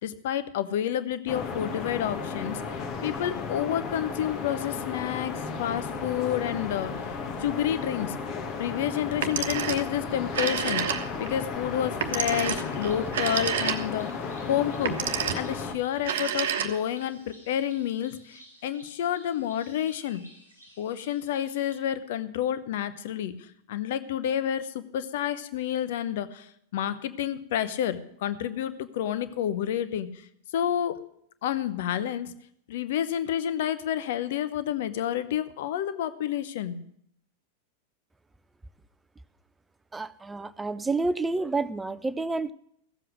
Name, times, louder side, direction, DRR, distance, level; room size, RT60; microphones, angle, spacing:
voice 1, 0.0-8.2 8.6-14.2 14.5-15.0 15.3-20.2 20.8-30.2 30.5-31.0 31.4-32.3 32.7-36.8, left 10 dB, 55° left, 13 dB, 0.8 m, -30 dB
sound 1, 1.3-15.8, left 5 dB, 35° left, 1.3 m, -34 dB
Telephone, 9.1-9.9 10.2-11.3 12.0-14.1 14.7-15.5 16.0-17.0, right 8 dB, 55° right, 1.0 m, -29 dB
sound 2, 12.0-21.7, equal, 80° left, 6.2 m, -54 dB
voice 2, 39.9-42.5, right 3 dB, 10° right, 14 dB, 0.5 m, -29 dB
15.5 x 7.7 x 6.4 m, 0.70 s
figure-of-eight pair, 90°, 0 cm